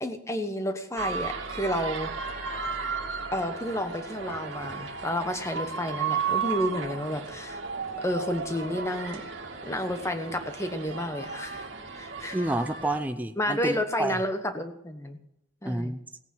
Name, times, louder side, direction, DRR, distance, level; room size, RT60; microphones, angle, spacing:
voice 1, 0.0-2.1 3.3-7.6 8.0-9.2 9.6-11.7 11.9-12.3 13.4-15.2 15.6-16.0, left 1 dB, 15° left, 8 dB, 1.1 m, -31 dB
sound 1, 1.0-13.0, right 5 dB, 65° right, 2.2 m, -34 dB
voice 2, 12.3-14.2 15.6-16.0, right 1 dB, 10° right, 8 dB, 0.5 m, -29 dB
17.5 x 8.9 x 6.1 m, 0.83 s
head